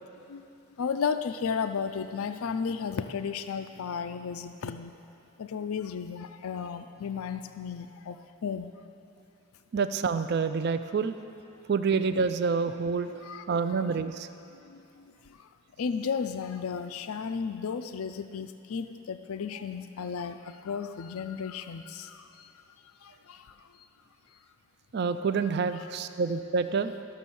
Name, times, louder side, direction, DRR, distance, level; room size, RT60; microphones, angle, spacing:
voice 1, 0.8-4.9 5.4-8.2 8.4-8.7 13.2-13.4 15.8-20.4 20.6-22.2, left 6 dB, 80° left, 9 dB, 0.4 m, -33 dB
voice 2, 9.7-11.2 11.7-13.1 13.5-14.3 24.9-26.9, right 5 dB, 50° right, 10 dB, 0.4 m, -27 dB
13.0 x 6.3 x 6.9 m, 2.8 s
head